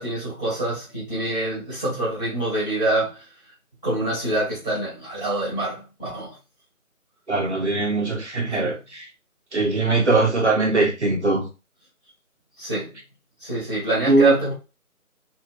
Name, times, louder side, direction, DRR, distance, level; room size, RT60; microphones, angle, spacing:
voice 1, 0.0-3.3 3.8-6.4 8.5-8.8 12.6-13.0 13.4-14.5, right 2 dB, ahead, 1.2 m, -25 dB
voice 2, 7.3-9.1 9.5-11.5 14.1-14.3, right 3 dB, 50° right, 0.9 m, -21 dB
3.0 x 2.8 x 2.5 m
figure-of-eight pair, 170°, 44 cm